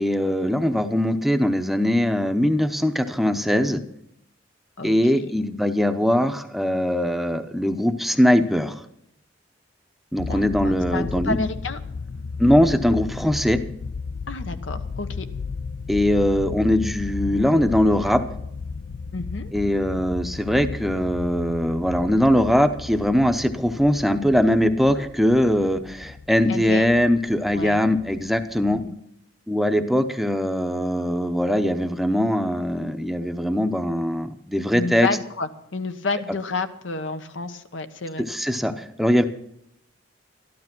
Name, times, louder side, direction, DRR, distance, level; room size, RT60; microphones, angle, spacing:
voice 1, 0.0-3.8 4.8-8.8 10.1-11.4 12.4-13.6 15.9-18.2 19.5-28.8 29.5-35.1 38.2-39.2, equal, ahead, 8 dB, 0.7 m, -21 dB
voice 2, 4.8-5.3 10.3-11.8 14.3-15.3 19.1-19.5 26.5-27.0 27.5-27.8 28.7-29.0 34.7-38.2, left 3 dB, 85° left, 9 dB, 1.1 m, -30 dB
sound 1, 10.2-28.9, left 4 dB, 65° left, 0.5 m, -34 dB
13.0 x 12.0 x 6.0 m, 0.75 s
head